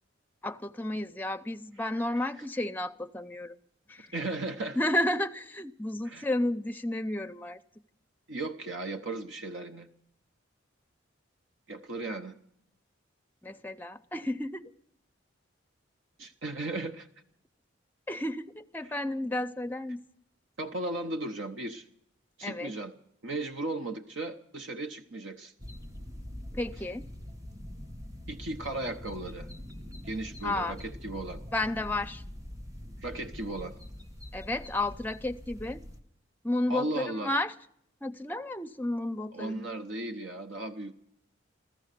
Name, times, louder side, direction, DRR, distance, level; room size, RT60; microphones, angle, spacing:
voice 1, 0.4-3.6 3.9-4.1 4.8-7.6 13.4-14.7 18.1-20.0 22.4-22.7 26.5-27.1 30.4-30.7 31.5-32.2 34.3-35.8 36.4-37.5 38.0-39.7, left 1 dB, 10° left, 0.6 m, -32 dB
voice 2, 4.1-4.8 6.0-6.3 8.3-9.9 11.7-12.3 16.2-17.1 20.6-21.9 22.4-22.9 23.2-25.5 28.3-29.5 30.0-31.4 33.0-33.8 36.7-37.3 39.3-40.9, right 2 dB, 70° right, 0.9 m, -36 dB
sound 1, 25.6-36.0, left 1 dB, 15° right, 1.3 m, -44 dB
16.0 x 14.0 x 6.7 m
head